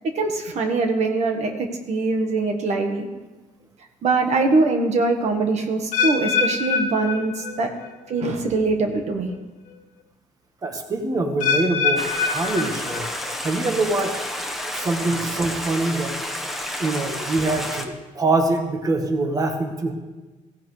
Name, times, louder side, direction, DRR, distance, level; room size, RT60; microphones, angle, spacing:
voice 1, 0.1-3.1 4.0-7.7 8.1-9.3, right 3 dB, 60° right, 4 dB, 1.4 m, -22 dB
sound 1, 5.9-7.9 8.2-8.6 9.3-9.4 11.4-13.4 13.7-14.1 14.8-14.9, left 6 dB, 70° left, 1.5 m, -25 dB
voice 2, 10.6-13.1 13.4-14.3 14.7-16.1 16.8-19.9, right 2 dB, 25° right, 4 dB, 1.3 m, -24 dB
Stream, 12.0-17.8, left 1 dB, ahead, 1.1 m, -30 dB
16.0 x 16.0 x 3.3 m, 1.2 s
cardioid pair, 150°, 13 cm